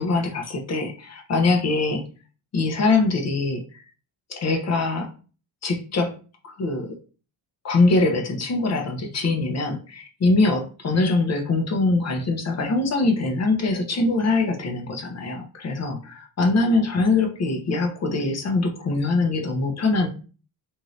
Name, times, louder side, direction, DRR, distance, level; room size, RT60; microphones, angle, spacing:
voice 1, 0.0-2.1 2.5-3.6 4.3-5.1 5.6-6.1 6.4-6.9 7.6-20.1, left 3 dB, 35° left, 3 dB, 0.6 m, -23 dB
2.7 x 2.5 x 3.1 m, 0.37 s
cardioid pair, 125°, 47 cm